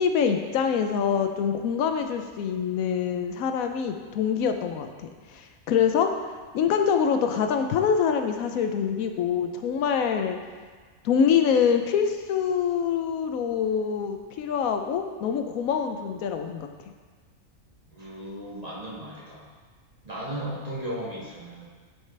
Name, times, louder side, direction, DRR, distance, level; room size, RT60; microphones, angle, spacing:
voice 1, 0.0-6.1 6.5-10.4 11.0-16.7, left 7 dB, 85° left, 6 dB, 1.0 m, -25 dB
voice 2, 17.9-19.5 20.0-21.6, right 1 dB, 30° right, -7 dB, 1.6 m, -36 dB
9.4 x 4.9 x 3.3 m, 1.5 s
omnidirectional pair, 1.4 m